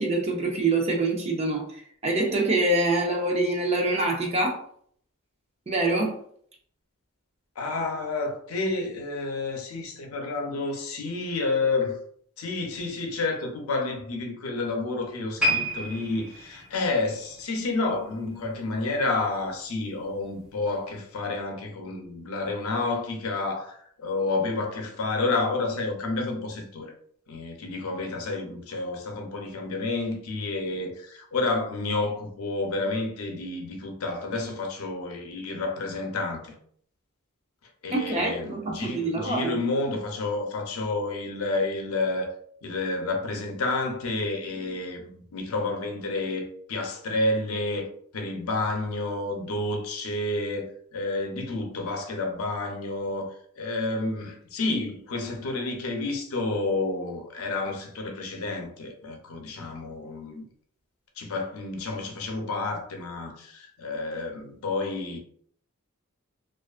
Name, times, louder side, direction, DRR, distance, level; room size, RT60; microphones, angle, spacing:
voice 1, 0.0-1.6 2.0-4.6 5.7-6.2 37.9-39.6, right 2 dB, 30° right, 0.5 m, -25 dB
voice 2, 7.6-12.0 12.4-26.9 27.3-36.6 37.8-42.4 42.6-47.9 48.1-60.4 61.2-65.2, left 2 dB, 85° left, 0.5 m, -30 dB
sound 1, 15.4-18.7 19.0-19.3 19.9-20.0, equal, 5° right, 1.1 m, -31 dB
2.4 x 2.3 x 2.4 m
head